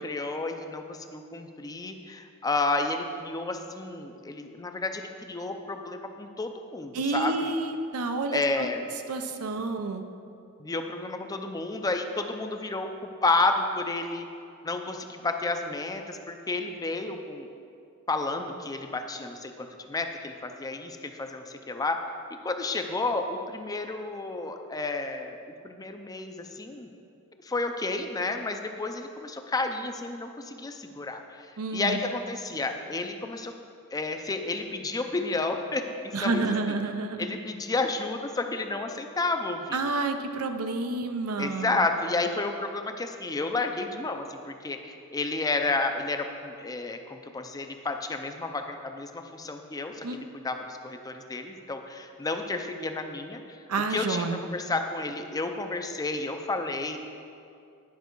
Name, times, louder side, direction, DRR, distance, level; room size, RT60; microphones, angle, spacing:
voice 1, 0.0-7.5 8.3-8.8 10.6-12.9 13.2-14.3 14.6-17.5 18.1-22.0 22.4-26.9 27.4-31.5 31.7-33.5 33.9-36.3 37.2-39.8 41.4-53.6 53.9-57.0, left 3 dB, 15° left, 5 dB, 0.4 m, -31 dB
voice 2, 6.9-8.7 9.1-10.1 31.6-32.0 36.1-37.3 39.7-41.8 50.0-50.2 53.7-54.4, right 3 dB, 85° right, 7 dB, 0.6 m, -29 dB
10.5 x 5.6 x 4.5 m, 2.5 s
head